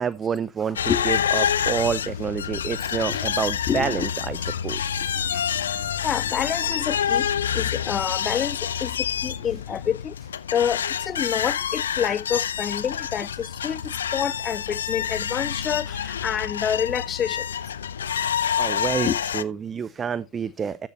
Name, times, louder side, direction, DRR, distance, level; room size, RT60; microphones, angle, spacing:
voice 1, 0.0-5.2 5.8-5.9 18.4-20.9, right 6 dB, 25° right, 0.5 m, -28 dB
sound 1, 0.8-19.4, left 8 dB, 80° left, 0.5 m, -27 dB
voice 2, 3.7-4.1 5.3-5.5 6.0-10.1 10.5-17.5 19.0-19.2, left 8 dB, 30° left, 0.4 m, -28 dB
13.0 x 7.5 x 3.1 m
hypercardioid pair, 80°, 0 cm